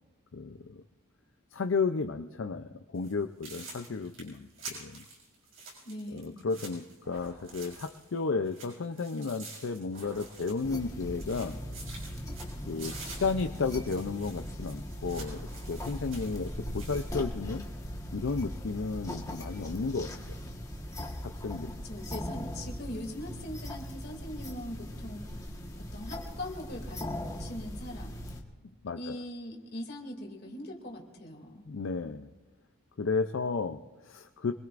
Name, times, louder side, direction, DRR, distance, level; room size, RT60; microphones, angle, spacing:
voice 1, 0.3-0.8 1.5-5.0 6.1-11.6 12.7-17.7 18.1-20.1 21.2-21.7 28.8-29.2 31.7-32.3 33.0-34.5, left 4 dB, 70° left, 8 dB, 0.5 m, -33 dB
sound 1, 2.9-3.1 3.4-8.2 8.4-10.9 11.2-17.1, right 3 dB, 90° right, 6.0 m, -48 dB
voice 2, 5.8-6.3 21.7-27.1 27.4-28.2 29.0-31.6, left 1 dB, 50° left, 1 dB, 2.5 m, -41 dB
sound 2, 7.0-8.1 9.9-11.0 12.8-13.9 15.1-16.2, right 1 dB, 50° right, 3.6 m, -55 dB
sound 3, 10.6-28.4, equal, 15° left, 1.4 m, -39 dB
25.0 x 21.5 x 2.5 m, 1.2 s
head